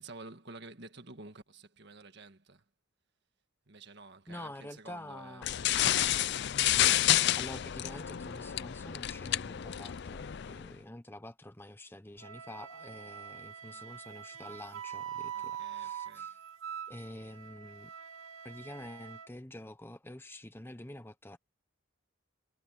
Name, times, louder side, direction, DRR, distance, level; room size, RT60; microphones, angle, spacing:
voice 1, 0.0-2.6 3.7-6.6 13.6-13.9 15.3-16.3, right 3 dB, 50° right, 1.6 m, -51 dB
voice 2, 4.3-5.5 7.4-16.4 16.9-17.9 18.4-21.4, left 1 dB, 10° left, 0.7 m, -47 dB
sound 1, 5.4-10.7, left 12 dB, 50° left, 0.4 m, -30 dB
Wind instrument woodwind instrument, 12.2-19.3, right 9 dB, 70° right, 2.2 m, -44 dB
head